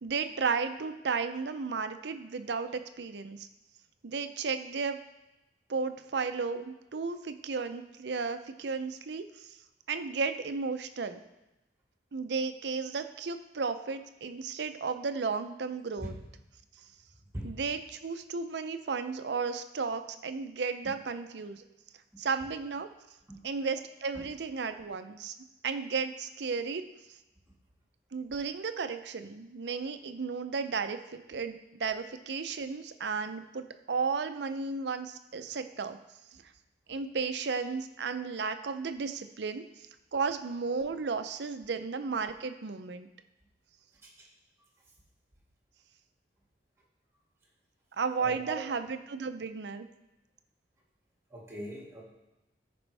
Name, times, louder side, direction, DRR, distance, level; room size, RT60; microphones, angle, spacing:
voice 1, 0.0-3.5 4.0-5.0 5.7-9.6 9.9-11.2 12.1-16.1 17.4-21.6 22.2-22.9 23.4-25.4 25.6-26.9 28.1-36.0 36.9-39.6 40.1-43.1 48.0-49.9, right 5 dB, 65° right, 9 dB, 0.5 m, -34 dB
voice 2, 48.2-48.6 51.3-52.0, right 1 dB, 15° right, -4 dB, 2.0 m, -40 dB
14.0 x 5.2 x 3.4 m, 0.98 s
head